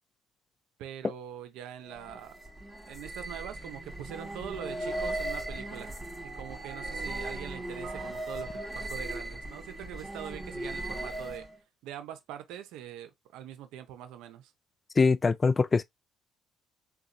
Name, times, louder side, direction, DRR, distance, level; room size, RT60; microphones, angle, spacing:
voice 1, 0.8-2.3 2.9-5.9 6.2-11.5 11.8-14.5, right 10 dB, 85° right, 0.7 m, -43 dB
sound 1, 1.8-11.6, right 1 dB, 10° right, 1.7 m, -38 dB
sound 2, 5.6-9.6, right 9 dB, 65° right, 1.0 m, -50 dB
voice 2, 15.0-15.8, left 4 dB, 25° left, 0.3 m, -23 dB
4.0 x 2.3 x 2.6 m
cardioid pair, 115°, 0 cm